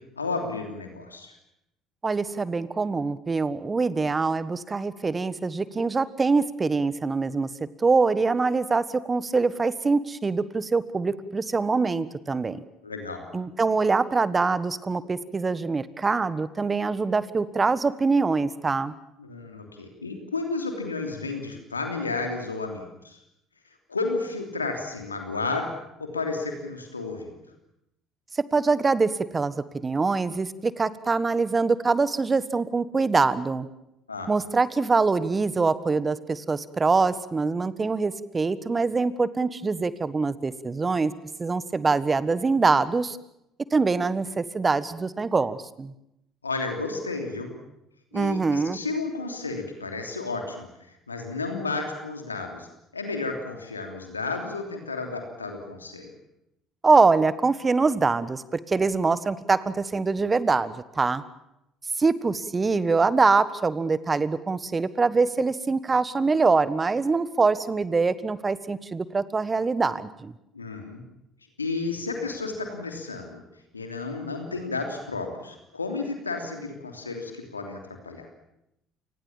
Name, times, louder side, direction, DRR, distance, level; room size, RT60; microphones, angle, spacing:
voice 1, 0.2-1.3 12.8-13.2 19.2-23.2 23.9-25.7 26.0-27.4 34.1-34.3 46.4-47.5 48.1-50.7 51.1-52.7 52.9-56.1 70.5-71.0 71.6-73.4 73.7-78.3, left 3 dB, 90° left, 4 dB, 3.1 m, -32 dB
voice 2, 2.0-7.5 7.8-12.6 13.3-18.9 28.5-33.7 34.3-41.1 41.4-43.2 43.7-45.9 48.1-48.8 56.8-61.2 62.0-70.3, right 4 dB, 25° right, 16 dB, 1.4 m, -24 dB
29.0 x 19.5 x 7.3 m, 0.84 s
figure-of-eight pair, 55°, 0 cm